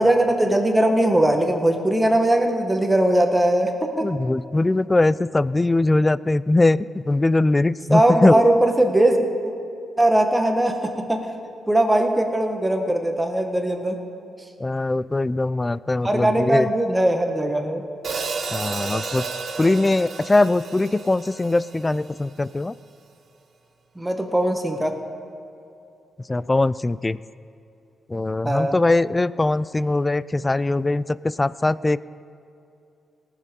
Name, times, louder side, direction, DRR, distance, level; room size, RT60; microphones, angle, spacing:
voice 1, 0.0-3.7 4.0-4.1 7.9-9.2 9.4-9.5 10.0-11.3 11.7-14.0 16.0-17.8 23.9-24.9 28.4-28.8, right 1 dB, 15° right, 4 dB, 1.6 m, -20 dB
voice 2, 4.0-8.4 14.6-16.7 18.5-19.2 19.6-22.8 26.3-27.2 28.1-32.0, left 2 dB, 20° left, 19 dB, 0.3 m, -21 dB
Hi-hat, 18.0-22.3, right 4 dB, 60° right, 1.2 m, -32 dB
18.5 x 7.6 x 5.3 m, 2.6 s
cardioid pair, 70°, 0 cm